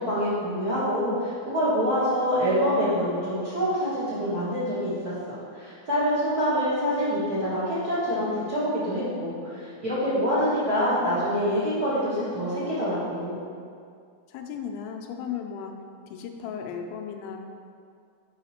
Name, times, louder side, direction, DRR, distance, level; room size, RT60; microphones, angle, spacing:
voice 1, 0.0-13.4, equal, 80° right, -11 dB, 0.8 m, -26 dB
voice 2, 14.3-15.8 16.1-17.4, left 7 dB, 85° left, 4 dB, 2.5 m, -35 dB
5.8 x 5.6 x 4.3 m, 2.3 s
omnidirectional pair, 4.4 m